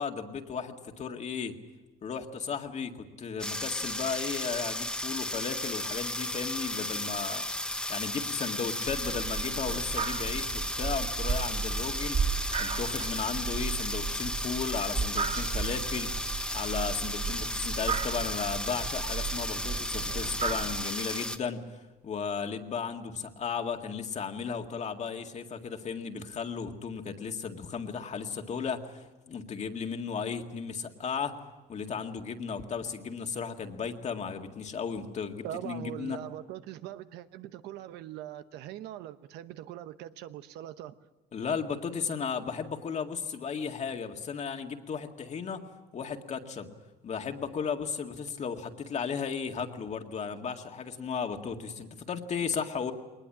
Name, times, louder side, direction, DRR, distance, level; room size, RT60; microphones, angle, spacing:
voice 1, 0.0-1.5 2.0-7.4 7.9-12.2 12.6-21.6 22.0-31.3 31.7-36.2 41.3-45.6 45.9-46.7 47.0-52.9, left 6 dB, 40° left, 5 dB, 2.0 m, -35 dB
sound 1, 3.4-21.4, left 1 dB, 5° left, 1.3 m, -34 dB
sound 2, 8.9-20.8, right 5 dB, 45° right, 3.1 m, -34 dB
voice 2, 35.4-40.9, right 12 dB, 90° right, 11 dB, 1.0 m, -41 dB
21.5 x 20.0 x 8.7 m, 1.2 s
cardioid pair, 110°, 17 cm